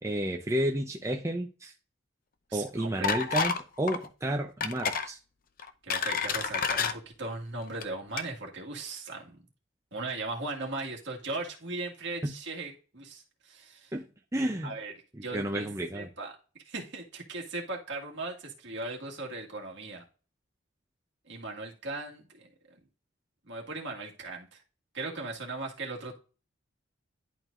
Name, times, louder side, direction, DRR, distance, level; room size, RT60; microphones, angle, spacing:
voice 1, 0.0-1.7 2.5-5.2 12.2-12.3 13.9-14.7 15.1-16.1, right 1 dB, 15° right, 2 dB, 0.6 m, -31 dB
voice 2, 2.5-3.1 5.8-9.4 9.9-13.9 14.6-14.9 15.2-15.7 15.9-16.3 16.7-20.0 21.3-22.5 23.5-24.6 24.9-26.1, right 3 dB, 60° right, 0 dB, 1.9 m, -38 dB
sound 1, 3.0-3.6 3.9-4.1 4.6-5.1 5.6-6.9 7.7-7.8 8.2-8.3, left 5 dB, 45° left, 0.7 m, -29 dB
11.0 x 4.5 x 2.5 m, 0.35 s
head